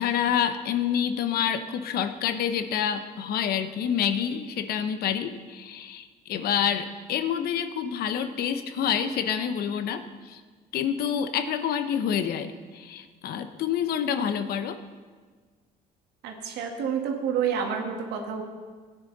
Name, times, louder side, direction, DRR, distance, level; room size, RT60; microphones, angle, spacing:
voice 1, 0.0-10.4 10.7-14.8, left 8 dB, 65° left, 10 dB, 0.9 m, -28 dB
voice 2, 16.2-18.4, right 7 dB, 80° right, 2 dB, 1.9 m, -29 dB
16.5 x 9.7 x 4.0 m, 1.5 s
cardioid pair, 110°, 17 cm